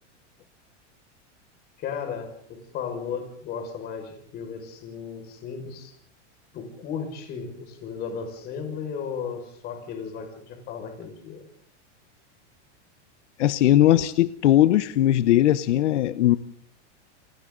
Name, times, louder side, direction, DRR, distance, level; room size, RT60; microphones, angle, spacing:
voice 1, 1.8-5.9 6.5-11.4, left 6 dB, 25° left, 5 dB, 5.8 m, -35 dB
voice 2, 13.4-16.4, left 13 dB, 75° left, 13 dB, 1.2 m, -19 dB
30.0 x 22.0 x 4.0 m, 0.63 s
supercardioid pair, 175°, 36 cm